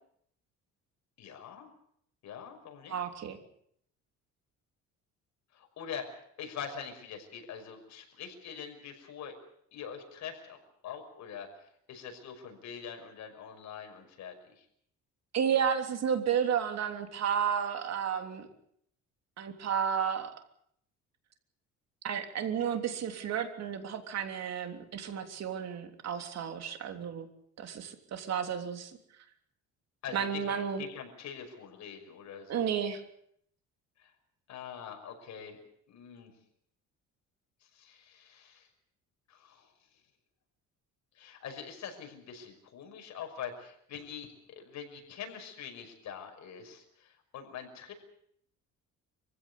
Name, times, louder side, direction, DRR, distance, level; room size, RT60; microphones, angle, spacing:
voice 1, 1.2-1.7 2.2-3.0 5.5-9.3 9.7-14.6 30.0-32.7 34.0-34.1 34.5-35.6 35.9-36.3 37.6-38.7 39.3-39.7 41.1-47.9, left 7 dB, 65° left, 4 dB, 5.9 m, -44 dB
voice 2, 2.9-3.4 15.3-18.5 19.4-20.3 22.0-27.3 27.6-29.0 30.1-30.8 32.5-33.0, right 8 dB, 55° right, 6 dB, 3.3 m, -32 dB
25.0 x 16.0 x 8.4 m, 0.69 s
cardioid pair, 130°, 31 cm